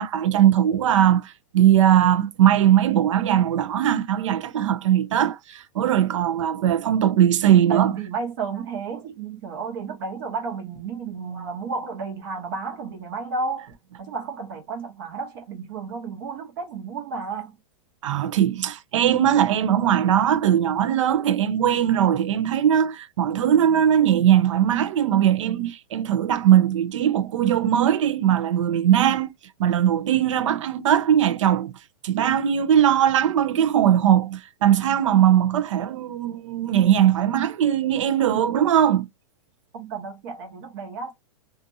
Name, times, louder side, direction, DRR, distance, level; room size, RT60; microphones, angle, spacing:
voice 1, 0.0-7.9 18.0-29.3 29.6-31.7 32.0-39.0, right 10 dB, 70° right, 0.5 m, -20 dB
voice 2, 7.7-17.6 39.7-41.1, right 4 dB, 45° right, 1.0 m, -32 dB
2.6 x 2.5 x 2.6 m
supercardioid pair, 170°, 17 cm